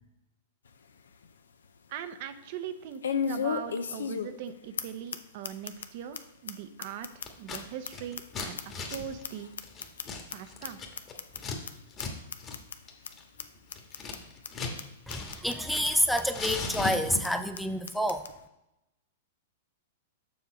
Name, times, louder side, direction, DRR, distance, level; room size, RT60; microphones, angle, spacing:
sound 1, 0.7-0.8 1.2-1.3 3.0-4.5 4.8-4.9 5.1-5.2 5.4-5.9 6.1-6.2 6.5-6.6 6.8-9.0 9.2-10.3 10.6-10.7 11.0-11.4 11.7-11.8 12.0-12.1 12.3-12.8 13.0-13.1 13.4-13.5 13.7-14.2 14.4-14.5 14.8-14.9 15.1-15.5 15.8-15.9 16.2-16.3 16.5-17.0 17.2-17.3 17.5-17.6 17.9-18.3, left 6 dB, 90° left, 0.5 m, -34 dB
voice 1, 1.9-9.5 10.3-10.8, right 8 dB, 55° right, 10 dB, 0.6 m, -40 dB
Scissors, 7.3-7.6 7.9-11.6 11.9-12.1 12.4-12.6 12.9-14.8 15.1-16.0 16.3-17.4, left 4 dB, 30° left, 1.3 m, -38 dB
voice 2, 15.1-18.3, equal, ahead, 8 dB, 0.4 m, -28 dB
7.1 x 3.7 x 6.2 m, 0.90 s
hypercardioid pair, 120°, 0 cm